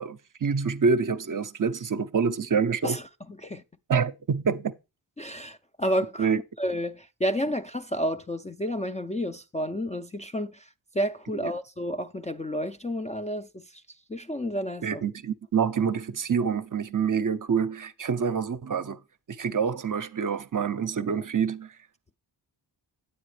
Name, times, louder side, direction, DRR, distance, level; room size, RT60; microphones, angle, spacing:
voice 1, 0.0-3.0 3.9-4.7 6.2-6.4 11.4-11.5 14.8-19.0 19.3-21.7, right 6 dB, 40° right, 0.6 m, -26 dB
voice 2, 5.2-6.3 6.6-10.7 10.9-13.8 14.1-15.0, equal, 15° left, 0.4 m, -30 dB
9.0 x 8.4 x 3.2 m
cardioid pair, 55°, 47 cm